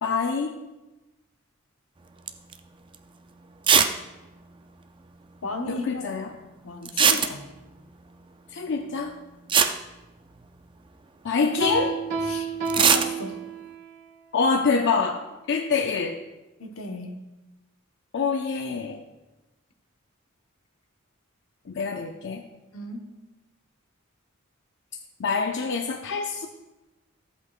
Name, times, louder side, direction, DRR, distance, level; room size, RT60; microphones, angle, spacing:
voice 1, 0.0-0.6 5.7-6.3 8.5-9.1 11.2-12.0 14.3-15.2 15.5-16.2 18.1-19.0 21.7-22.4 25.2-26.5, left 4 dB, 60° left, 4 dB, 0.5 m, -25 dB
sound 1, 2.3-2.6 2.9-3.0 3.6-4.0 4.2-4.3 4.5-4.6 6.9-7.7 9.1-9.2 9.5-10.7 12.7-13.1, right 6 dB, 25° right, 0.4 m, -20 dB
voice 2, 5.4-6.0 6.6-7.6 12.2-13.4 16.6-17.2 22.7-23.0, left 2 dB, 85° left, 3 dB, 1.1 m, -35 dB
Piano, 11.6-13.9, right 4 dB, 45° right, 2.0 m, -30 dB
14.0 x 8.0 x 2.4 m, 1.1 s
head